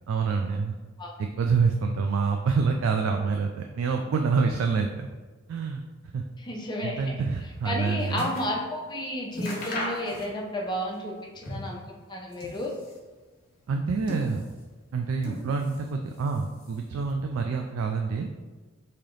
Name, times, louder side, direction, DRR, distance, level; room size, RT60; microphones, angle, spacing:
voice 1, 0.1-0.7 1.2-5.1 5.5-5.8 6.1-6.2 6.8-8.2 13.7-14.4 14.9-18.3, right 5 dB, 80° right, 3 dB, 0.3 m, -27 dB
voice 2, 6.4-7.1 7.6-12.7, left 1 dB, 20° left, -1 dB, 0.6 m, -32 dB
sound 1, 7.4-8.6 8.9-9.0 9.3-10.6 10.9-11.8 12.2-13.1 13.7-14.7 15.2-15.9 16.2-16.9 17.6-17.7, left 1 dB, 45° left, 1.0 m, -37 dB
3.2 x 2.8 x 3.8 m, 1.3 s
head